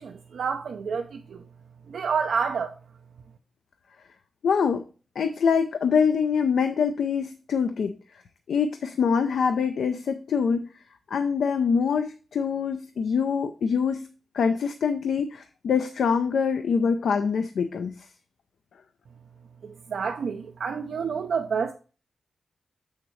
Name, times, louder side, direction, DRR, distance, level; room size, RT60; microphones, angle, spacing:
voice 1, 0.0-1.4 1.9-2.8 19.6-21.7, right 6 dB, 85° right, 0.5 m, -29 dB
voice 2, 4.4-4.8 5.2-7.9 8.5-10.7 11.1-14.1 14.3-18.1, left 6 dB, 90° left, 0.5 m, -24 dB
6.9 x 6.4 x 3.1 m
cardioid pair, 85°, 0 cm